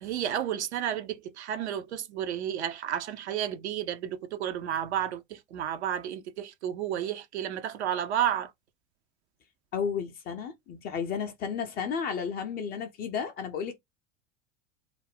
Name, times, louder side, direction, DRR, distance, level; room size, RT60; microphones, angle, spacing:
voice 1, 0.0-8.5, right 10 dB, 65° right, 0.5 m, -32 dB
voice 2, 9.7-13.8, left 6 dB, 25° left, 0.4 m, -33 dB
2.4 x 2.0 x 3.2 m
figure-of-eight pair, 75°, 37 cm